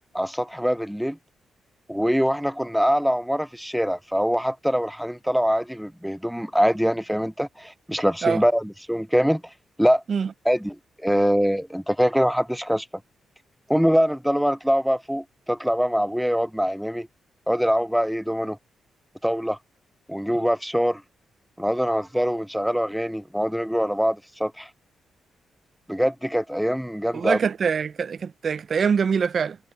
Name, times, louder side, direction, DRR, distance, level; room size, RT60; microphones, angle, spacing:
voice 1, 0.1-1.2 1.9-9.5 9.8-10.0 10.5-12.9 13.7-17.1 17.5-18.6 19.2-19.6 20.1-21.0 21.6-24.7 25.9-27.4, equal, ahead, 0.5 m, -23 dB
voice 2, 27.1-29.6, right 6 dB, 55° right, 0.4 m, -24 dB
cardioid pair, 70°, 0 cm